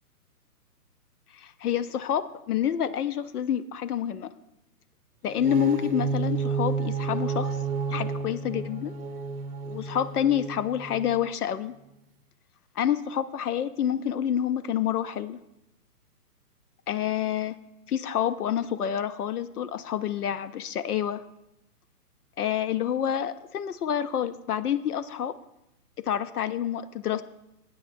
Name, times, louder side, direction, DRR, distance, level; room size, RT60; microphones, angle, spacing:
voice 1, 1.3-4.3 5.2-7.6 7.9-9.0 9.7-11.7 12.8-15.4 16.9-17.6 17.9-21.2 22.4-25.4 26.1-27.2, left 10 dB, 70° left, 14 dB, 0.6 m, -28 dB
sound 1, 5.3-11.2, right 5 dB, 40° right, 0.8 m, -31 dB
14.5 x 8.6 x 2.5 m, 0.89 s
hypercardioid pair, 160°, 48 cm